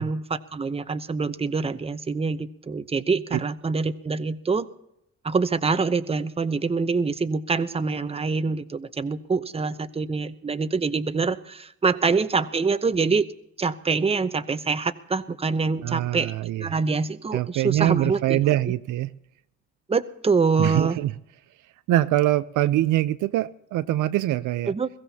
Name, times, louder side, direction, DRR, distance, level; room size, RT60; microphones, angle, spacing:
voice 1, 0.0-4.7 5.2-13.3 13.6-16.3 16.6-18.4 19.9-21.0 24.7-24.9, right 4 dB, 20° right, 0.7 m, -25 dB
voice 2, 15.8-16.7 17.3-19.1 20.6-21.1 21.9-24.7, right 14 dB, 80° right, 0.6 m, -23 dB
22.0 x 15.5 x 2.8 m
cardioid pair, 90°, 30 cm